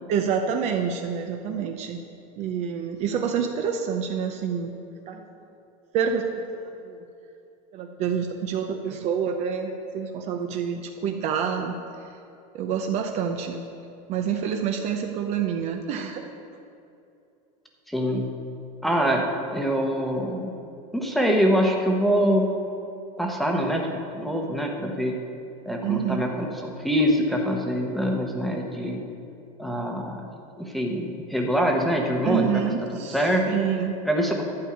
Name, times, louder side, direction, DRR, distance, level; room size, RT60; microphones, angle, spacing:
voice 1, 0.1-2.0 2.4-4.7 5.1-5.3 5.9-7.0 7.7-11.8 12.5-13.6 14.1-16.3 25.8-26.3 32.2-34.0, right 7 dB, 35° right, 4 dB, 0.6 m, -27 dB
voice 2, 17.9-18.3 18.8-20.5 20.9-22.5 23.2-23.9 24.1-25.2 25.7-29.0 29.6-30.3 30.6-32.7 33.1-33.4 34.0-34.4, equal, ahead, 0 dB, 1.0 m, -24 dB
11.5 x 5.4 x 8.7 m, 2.6 s
supercardioid pair, 165°, 18 cm